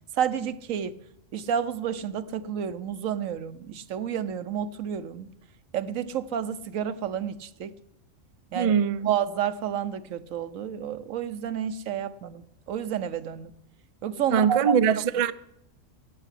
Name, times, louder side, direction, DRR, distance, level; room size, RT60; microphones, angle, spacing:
voice 1, 0.2-1.0 1.3-5.3 5.7-7.8 8.5-8.7 9.0-13.5 14.0-14.7, right 9 dB, 85° right, 1.2 m, -30 dB
voice 2, 8.5-9.1 14.3-15.3, right 7 dB, 45° right, 0.4 m, -22 dB
16.5 x 7.0 x 9.9 m
omnidirectional pair, 1.4 m